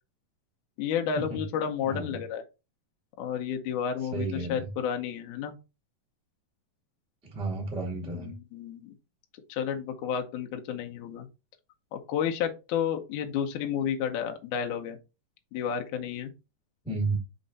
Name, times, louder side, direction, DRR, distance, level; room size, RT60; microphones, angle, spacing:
voice 1, 0.8-2.4 3.2-5.5 8.1-8.9 9.5-11.3 11.9-15.0 15.5-16.3, left 8 dB, 70° left, 4 dB, 2.1 m, -31 dB
voice 2, 4.1-4.6 7.3-8.3 16.8-17.2, right 3 dB, ahead, -2 dB, 1.3 m, -32 dB
5.3 x 4.5 x 4.0 m, 0.29 s
omnidirectional pair, 4.2 m